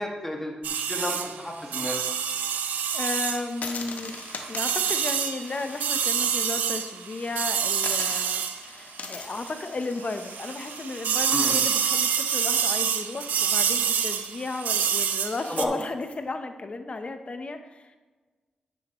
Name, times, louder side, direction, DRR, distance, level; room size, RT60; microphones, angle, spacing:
voice 1, 0.0-2.0 11.3-11.6 15.5-15.8, left 1 dB, 15° left, 0 dB, 2.0 m, -31 dB
sound 1, 0.6-9.7 10.0-15.7, right 8 dB, 85° right, 0.5 m, -27 dB
voice 2, 2.9-4.2 4.5-18.0, left 3 dB, 45° left, 8 dB, 0.9 m, -34 dB
sound 2, 3.5-6.9 7.3-7.4 7.8-16.1, left 4 dB, 70° left, 0.9 m, -42 dB
9.6 x 7.3 x 3.1 m, 1.3 s
supercardioid pair, 50°, 3 cm